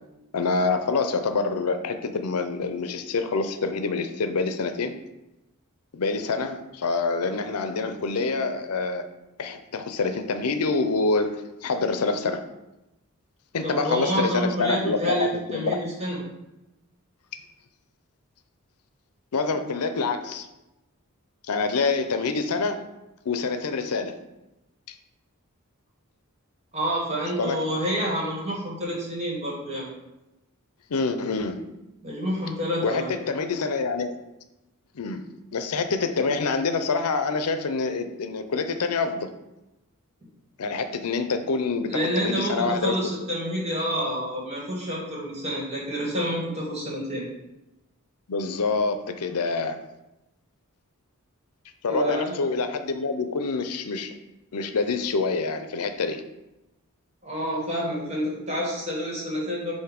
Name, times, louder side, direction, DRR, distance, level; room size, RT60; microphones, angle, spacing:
voice 1, 0.3-5.0 5.9-9.1 9.4-11.3 11.6-12.4 13.5-15.8 19.3-20.5 21.5-22.8 23.3-24.2 24.9-25.0 27.4-27.6 30.9-31.6 32.8-34.2 34.9-35.2 35.5-39.3 40.6-43.0 48.3-49.8 51.8-54.1 54.5-56.2, left 4 dB, 85° left, 8 dB, 0.6 m, -26 dB
voice 2, 13.6-16.2 26.7-29.9 32.0-33.1 41.9-47.2 51.9-52.3 57.2-59.7, equal, 30° right, -4 dB, 1.8 m, -28 dB
7.9 x 2.7 x 5.1 m, 0.96 s
head